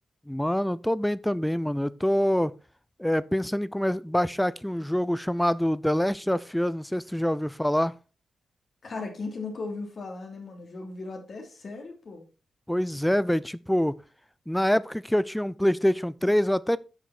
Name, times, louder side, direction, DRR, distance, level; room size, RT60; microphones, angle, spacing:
voice 1, 0.3-2.6 3.0-7.9 12.7-14.0 14.5-16.8, equal, 5° left, 0.5 m, -25 dB
voice 2, 8.8-12.2, left 3 dB, 55° left, 2.9 m, -37 dB
9.5 x 6.0 x 4.3 m
hypercardioid pair, 40°, 0 cm